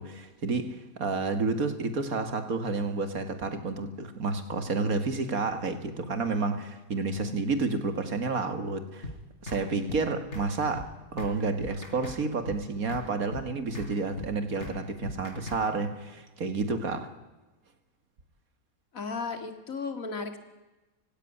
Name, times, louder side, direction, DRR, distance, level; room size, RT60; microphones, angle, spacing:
voice 1, 0.0-9.1 9.4-17.1, right 3 dB, 85° right, 2.4 m, -30 dB
sound 1, 9.0-9.2 9.5-9.6 9.9-10.0 10.3-10.5 10.7-10.9 11.2-11.3 11.6-12.2 12.5-12.6 12.9-13.0 13.3-13.5 13.7-13.9 14.2-14.3 14.6-14.8 15.0-15.6, left 2 dB, 55° left, 4.7 m, -39 dB
voice 2, 18.9-20.4, left 4 dB, 70° left, 2.6 m, -34 dB
24.5 x 16.5 x 10.0 m
omnidirectional pair, 1.5 m